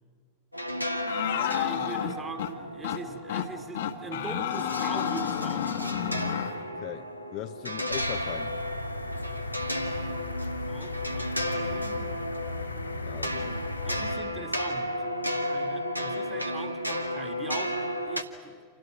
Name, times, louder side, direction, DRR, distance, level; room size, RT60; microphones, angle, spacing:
sound 1, 0.5-18.2, equal, 90° right, 1.2 m, -33 dB
sound 2, 1.1-2.5 2.8-3.0 3.3-3.5 3.8-6.5, left 9 dB, 60° left, 1.5 m, -30 dB
voice 1, 1.2-5.9 10.7-12.2 13.8-15.1 15.5-18.6, right 4 dB, 20° right, 1.8 m, -42 dB
voice 2, 6.7-8.6 13.1-13.6, left 14 dB, 40° left, 0.7 m, -39 dB
sound 3, 7.9-14.2, left 2 dB, 85° left, 2.7 m, -37 dB
29.0 x 27.5 x 6.2 m
figure-of-eight pair, 90°, 0 cm